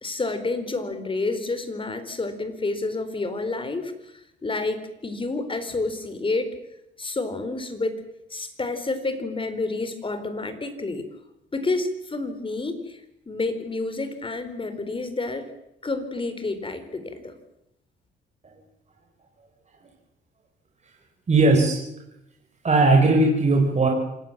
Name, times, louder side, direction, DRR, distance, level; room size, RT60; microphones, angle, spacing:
voice 1, 0.0-4.1 4.4-6.5 7.0-8.0 8.3-11.1 11.5-13.0 13.3-15.5 15.8-17.3, left 3 dB, 25° left, 10 dB, 4.4 m, -29 dB
voice 2, 21.3-21.8 22.6-23.9, right 2 dB, 35° right, 1 dB, 5.1 m, -18 dB
26.5 x 19.0 x 7.5 m, 0.85 s
cardioid pair, 90°, 20 cm